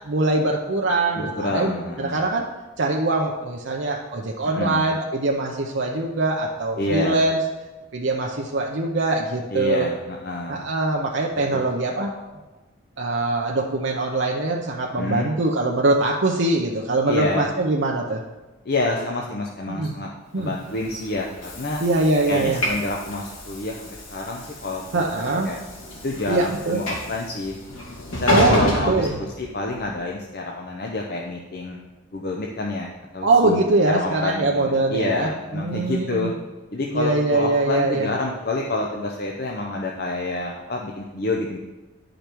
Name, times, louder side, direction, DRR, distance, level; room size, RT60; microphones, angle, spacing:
voice 1, 0.0-2.5 2.8-7.4 7.9-9.9 10.5-12.1 13.0-18.2 19.7-19.9 20.3-20.5 21.8-22.6 24.9-25.5 26.3-26.8 28.3-29.2 33.2-36.3 36.9-38.1, right 2 dB, 60° right, -1 dB, 0.7 m, -22 dB
voice 2, 1.2-2.3 4.5-4.9 6.8-7.2 9.5-10.6 11.5-11.6 15.0-15.3 17.1-17.5 18.7-21.8 22.3-24.8 25.5-25.6 26.0-27.6 28.2-31.8 32.1-36.3 36.7-41.6, left 2 dB, 50° left, 0 dB, 0.7 m, -28 dB
Train / Sliding door, 20.6-29.8, left 1 dB, 90° left, 2.5 m, -29 dB
10.5 x 5.2 x 4.5 m, 1.2 s
head